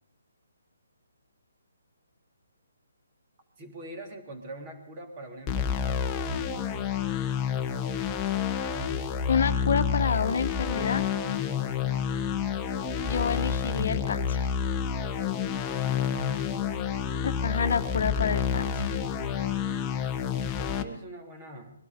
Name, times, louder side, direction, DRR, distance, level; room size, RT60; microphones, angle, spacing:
voice 1, 3.6-6.8 11.6-11.9 15.6-16.3 20.6-21.7, right 1 dB, 30° right, 4 dB, 3.2 m, -44 dB
sound 1, 5.5-20.8, left 7 dB, 15° left, 1.1 m, -29 dB
voice 2, 9.3-11.0 13.0-14.5 17.2-19.0, left 6 dB, 60° left, 9 dB, 1.1 m, -28 dB
21.5 x 12.0 x 5.2 m, 0.70 s
hypercardioid pair, 155°, 0 cm